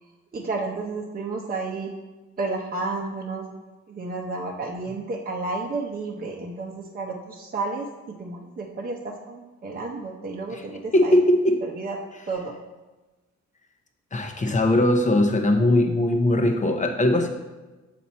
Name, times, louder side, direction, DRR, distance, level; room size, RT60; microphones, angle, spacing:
voice 1, 0.3-1.9 2.4-11.2 11.6-12.0 12.2-12.5, right 3 dB, 30° right, -1 dB, 0.8 m, -32 dB
voice 2, 10.9-11.6 14.1-17.3, left 1 dB, 25° left, 4 dB, 0.8 m, -20 dB
7.1 x 4.3 x 4.2 m, 1.2 s
cardioid pair, 90°, 30 cm